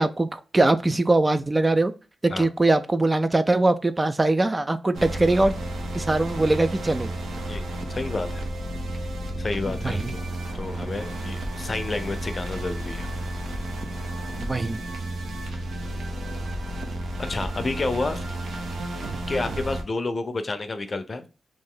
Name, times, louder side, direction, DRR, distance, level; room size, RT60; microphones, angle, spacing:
voice 1, 0.0-1.9 2.2-5.5 5.9-7.1 9.8-10.1 14.4-14.8, right 2 dB, 25° right, 0.3 m, -22 dB
sound 1, 4.9-19.8, right 1 dB, 75° right, 0.8 m, -32 dB
voice 2, 7.5-8.4 9.4-10.3 10.5-13.1 17.3-18.2 19.3-21.3, left 3 dB, 40° left, 0.6 m, -30 dB
3.1 x 2.6 x 3.7 m
cardioid pair, 80°, 0 cm